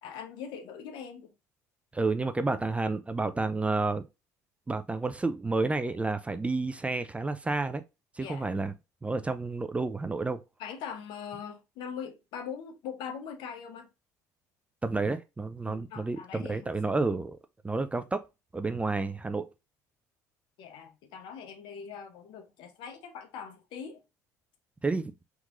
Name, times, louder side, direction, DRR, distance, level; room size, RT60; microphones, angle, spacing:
voice 1, 0.0-1.3 8.2-8.5 10.6-13.9 15.6-16.7 20.6-24.0, left 7 dB, 65° left, 0.8 m, -41 dB
voice 2, 1.9-4.0 4.7-7.8 8.2-8.7 9.0-10.4 14.8-17.4 17.6-18.2 18.5-19.5 24.8-25.1, right 3 dB, 15° right, 0.4 m, -30 dB
3.6 x 3.0 x 2.4 m
hypercardioid pair, 70°, 9 cm